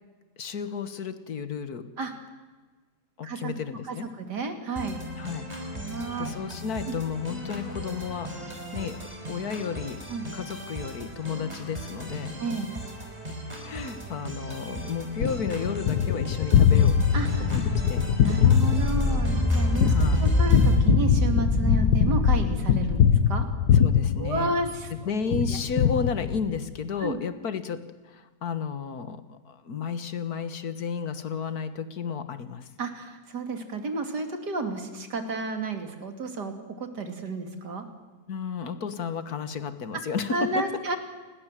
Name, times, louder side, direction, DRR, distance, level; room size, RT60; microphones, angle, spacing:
voice 1, 0.4-1.9 3.2-4.1 5.2-5.4 6.2-9.0 9.3-10.0 10.3-12.3 13.6-18.1 19.9-20.3 23.7-24.5 24.9-32.7 38.3-40.5, left 6 dB, 60° left, 11 dB, 2.0 m, -33 dB
voice 2, 3.9-5.0 5.7-6.3 6.9-7.0 10.1-10.3 12.4-12.7 17.1-17.7 18.2-23.5 24.2-24.9 25.5-25.6 27.0-27.2 32.8-37.8 40.3-41.0, right 3 dB, 70° right, 6 dB, 3.2 m, -31 dB
sound 1, 4.8-20.8, equal, 20° right, 4.9 m, -37 dB
Gunshot gunfire, 15.2-24.9 25.3-26.7, left 8 dB, 85° left, 1.6 m, -22 dB
sound 2, 16.9-24.0, equal, 10° left, 3.9 m, -26 dB
29.5 x 20.5 x 7.6 m, 1.3 s
omnidirectional pair, 1.8 m